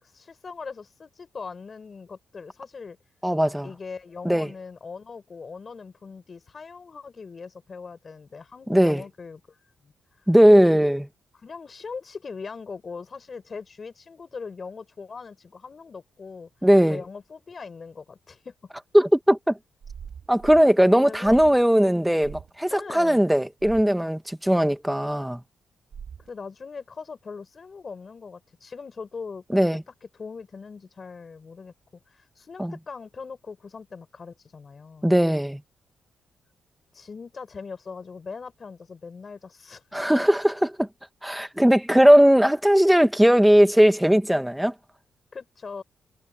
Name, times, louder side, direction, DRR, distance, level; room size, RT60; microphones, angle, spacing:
voice 1, 0.0-3.0 3.6-9.6 9.8-9.9 11.3-16.5 16.9-18.5 21.0-21.4 22.7-23.2 26.3-31.7 32.1-35.1 36.9-39.8 45.3-45.8, left 5 dB, 35° left, 4.6 m, -40 dB
voice 2, 3.2-3.7 4.2-4.5 8.7-9.0 10.3-11.1 16.6-17.0 18.9-19.6 20.3-25.4 29.5-29.8 32.6-32.7 35.0-35.6 39.9-40.9 41.2-44.7, equal, 5° right, 1.3 m, -18 dB
sound 1, 19.8-20.7 21.2-21.6 22.2-22.5 23.6-23.9 25.9-26.3, right 7 dB, 50° right, 7.3 m, -41 dB
cardioid pair, 135°, 0 cm